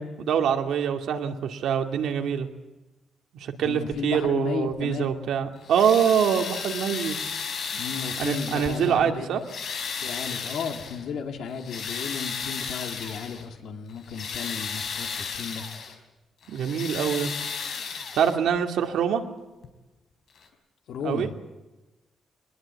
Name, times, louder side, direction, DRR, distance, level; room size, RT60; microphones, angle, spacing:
voice 1, 0.0-2.5 3.3-7.2 8.2-9.4 16.5-17.4 17.8-19.2 21.0-21.3, right 8 dB, 80° right, 4 dB, 2.3 m, -25 dB
voice 2, 3.6-5.1 7.7-9.3 10.0-15.7 20.9-21.3, left 6 dB, 80° left, 4 dB, 2.7 m, -34 dB
sound 1, 5.6-9.0 9.4-11.0 11.5-13.4 13.9-15.9 16.4-18.6 19.6-19.7 20.4-20.5, left 6 dB, 55° left, 4.0 m, -34 dB
24.0 x 20.5 x 8.4 m, 1.1 s
wide cardioid pair, 175°, 0 cm